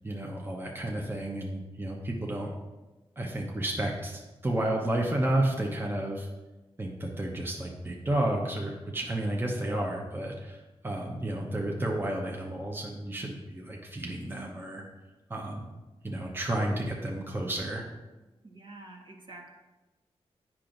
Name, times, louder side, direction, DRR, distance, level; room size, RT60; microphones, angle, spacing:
voice 1, 0.0-2.5 3.2-6.3 6.8-14.8 15.3-15.7 16.0-17.9, right 1 dB, 20° right, -1 dB, 0.9 m, -31 dB
voice 2, 18.4-19.5, right 2 dB, 45° right, 0 dB, 1.2 m, -47 dB
8.4 x 5.9 x 2.6 m, 1.1 s
cardioid pair, 60°, 11 cm